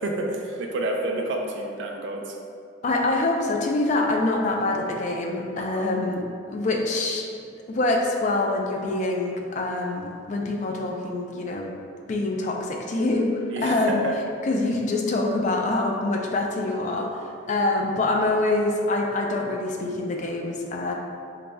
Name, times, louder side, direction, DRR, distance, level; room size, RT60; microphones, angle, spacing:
voice 1, 0.0-2.4 5.5-5.9 13.5-14.1, right 2 dB, 70° right, 1 dB, 0.4 m, -29 dB
voice 2, 2.8-6.2 6.5-7.3 7.7-11.7 12.1-14.0 14.4-17.1 17.5-20.9, left 2 dB, 40° left, 1 dB, 0.4 m, -25 dB
4.0 x 2.2 x 3.2 m, 2.4 s
head